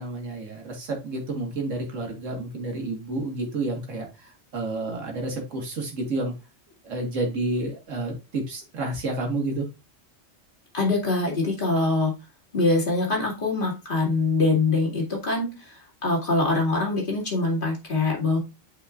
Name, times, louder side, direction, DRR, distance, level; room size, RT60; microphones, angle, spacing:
voice 1, 0.0-6.3 6.8-9.7, right 2 dB, 80° right, 2 dB, 1.9 m, -30 dB
voice 2, 10.7-12.1 12.5-18.4, left 3 dB, 45° left, -2 dB, 2.3 m, -24 dB
8.2 x 4.9 x 2.4 m, 0.27 s
omnidirectional pair, 1.3 m